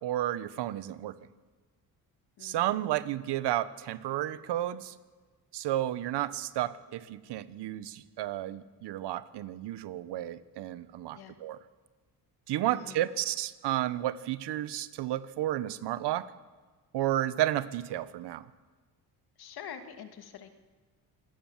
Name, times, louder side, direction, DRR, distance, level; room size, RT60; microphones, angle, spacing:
voice 1, 0.0-1.2 2.4-4.9 5.5-11.6 12.5-16.3 16.9-18.4, right 13 dB, 80° right, 15 dB, 1.2 m, -32 dB
voice 2, 2.4-2.8 11.1-11.4 12.7-13.0 19.4-20.5, left 8 dB, 65° left, 7 dB, 2.6 m, -46 dB
27.0 x 18.5 x 7.4 m, 1.4 s
cardioid pair, 120°, 40 cm